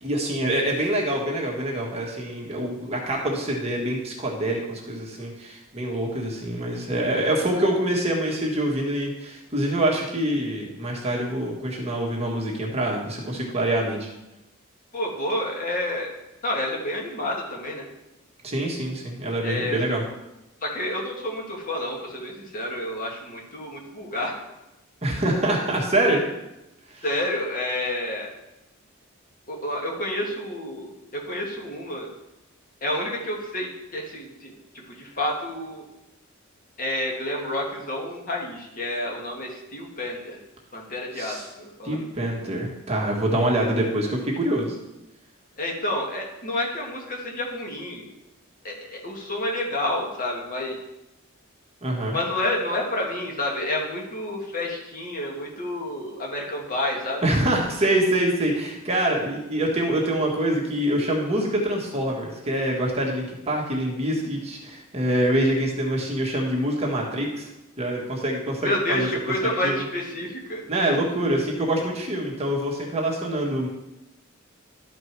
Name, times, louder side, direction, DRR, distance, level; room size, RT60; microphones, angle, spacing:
voice 1, 0.0-14.1 18.4-20.0 25.0-26.2 26.9-27.0 41.1-41.4 41.8-44.7 51.8-52.2 57.2-67.5 67.8-69.1 69.4-69.8 70.7-73.7, right 1 dB, 30° right, -2 dB, 1.7 m, -25 dB
voice 2, 14.9-16.1 16.4-17.9 19.4-19.8 20.6-24.4 27.0-28.3 29.5-32.1 32.8-34.5 34.9-35.8 36.8-40.4 40.7-42.0 45.6-48.1 48.6-50.8 52.1-57.3 68.6-70.6, left 1 dB, 40° left, -1 dB, 1.8 m, -29 dB
12.0 x 5.1 x 4.7 m, 0.94 s
head